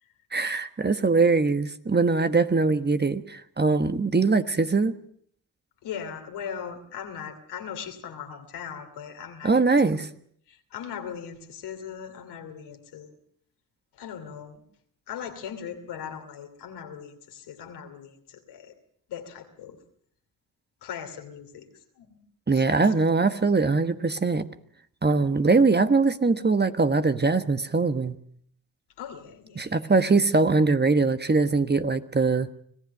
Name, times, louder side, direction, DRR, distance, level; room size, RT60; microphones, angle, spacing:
voice 1, 0.3-5.0 9.4-10.0 22.5-24.5 25.0-28.2 29.6-32.5, right 3 dB, 25° right, 10 dB, 1.3 m, -22 dB
voice 2, 5.8-10.1 10.5-13.1 13.9-14.6 15.1-18.7 19.1-19.8 20.8-22.2 22.5-22.9 29.0-29.9, left 8 dB, 85° left, 4 dB, 2.8 m, -39 dB
25.5 x 15.5 x 6.6 m, 0.64 s
supercardioid pair, 50°, 39 cm